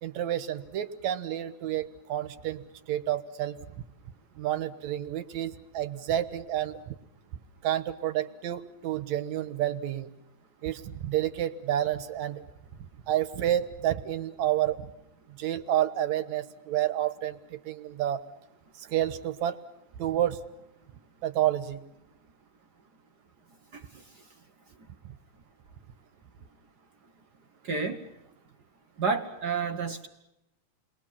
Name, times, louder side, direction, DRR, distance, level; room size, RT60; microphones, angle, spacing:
voice 1, 0.0-3.6 4.4-7.0 7.6-10.1 10.6-12.4 13.1-14.9 15.4-18.2 18.8-19.6 20.0-20.4 21.2-21.8, right 12 dB, 75° right, 12 dB, 2.5 m, -29 dB
voice 2, 23.7-24.2 27.6-28.0 29.0-30.1, right 4 dB, 50° right, 7 dB, 1.2 m, -31 dB
30.0 x 22.0 x 7.4 m, 0.87 s
omnidirectional pair, 3.3 m